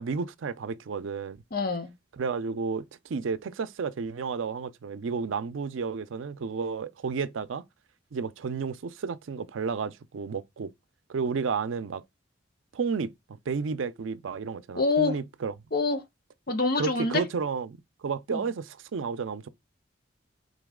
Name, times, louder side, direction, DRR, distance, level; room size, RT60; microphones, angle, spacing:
voice 1, 0.0-1.4 2.1-7.6 8.1-10.7 11.1-12.0 12.7-13.1 13.5-15.5 16.8-19.5, right 5 dB, 85° right, 0.4 m, -32 dB
voice 2, 1.5-1.9 14.7-15.2 15.7-16.0 16.5-17.2 18.3-18.5, left 3 dB, 50° left, 0.9 m, -26 dB
3.9 x 3.0 x 3.6 m
head